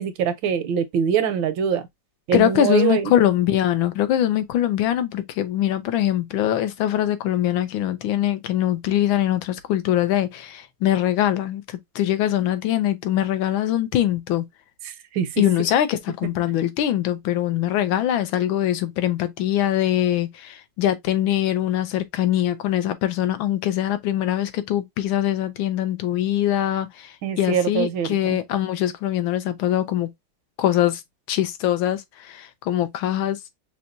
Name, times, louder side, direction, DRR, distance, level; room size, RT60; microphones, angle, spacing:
voice 1, 0.0-1.8 2.3-3.1 14.8-15.4 27.2-28.4, right 8 dB, 80° right, 1.4 m, -24 dB
voice 2, 2.3-14.4 15.4-30.1 30.6-31.0 31.3-33.4, left 12 dB, 85° left, 1.4 m, -22 dB
5.8 x 2.2 x 2.5 m
omnidirectional pair, 2.1 m